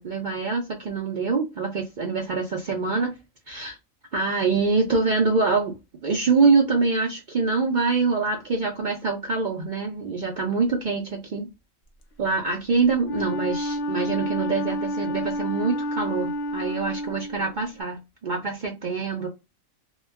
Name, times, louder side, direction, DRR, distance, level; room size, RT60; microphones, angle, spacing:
voice 1, 0.0-3.1 3.5-3.8 4.1-5.7 6.0-11.5 12.2-19.3, right 4 dB, 65° right, 0 dB, 0.4 m, -25 dB
Wind instrument woodwind instrument, 13.0-17.8, equal, 60° left, 0.8 m, -29 dB
2.3 x 2.2 x 3.3 m, 0.24 s
omnidirectional pair, 1.5 m